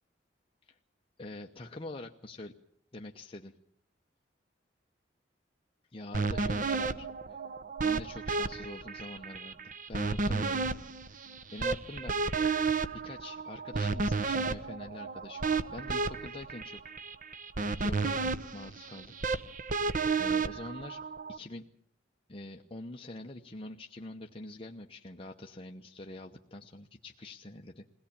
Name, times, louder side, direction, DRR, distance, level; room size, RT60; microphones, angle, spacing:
voice 1, 1.2-2.5 2.9-3.5 5.9-7.4 7.8-9.6 9.9-10.6 11.0-12.2 12.9-15.4 15.7-16.8 17.8-19.2 19.7-21.0 21.3-21.7 22.3-28.0, left 2 dB, 30° left, 2 dB, 0.9 m, -45 dB
sound 1, 6.1-21.4, right 4 dB, 45° right, 1.0 m, -32 dB
22.0 x 17.5 x 8.7 m, 0.66 s
head